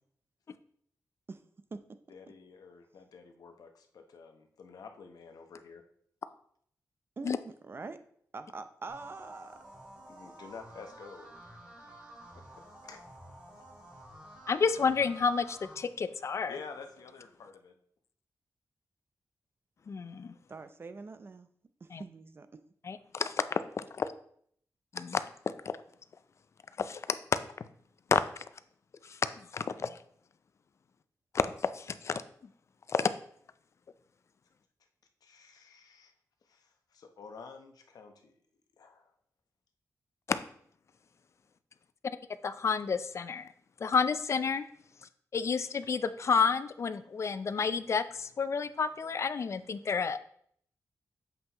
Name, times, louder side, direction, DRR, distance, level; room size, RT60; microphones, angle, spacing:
voice 1, 2.1-5.8 10.1-11.4 11.8-12.0 12.3-13.0 16.5-17.8 35.2-36.1 36.5-38.4 38.8-39.1, left 5 dB, 85° left, 5 dB, 0.8 m, -50 dB
voice 2, 7.2-8.0 8.3-9.6 20.5-21.5 21.8-22.6, right 3 dB, 35° right, 10 dB, 0.5 m, -44 dB
sound 1, 8.9-15.7, equal, 15° right, 2.5 m, -51 dB
voice 3, 14.5-16.6 19.9-20.3 21.9-22.0 22.8-24.1 24.9-25.2 26.8-27.2 28.1-28.4 29.0-29.2 29.5-30.0 31.3-31.5 31.7-32.2 32.9-33.1 40.3-40.4 42.4-43.5 43.8-44.6 45.3-50.2, left 5 dB, 50° left, 13 dB, 0.4 m, -30 dB
8.0 x 5.6 x 2.9 m, 0.64 s
wide cardioid pair, 125°, 6 cm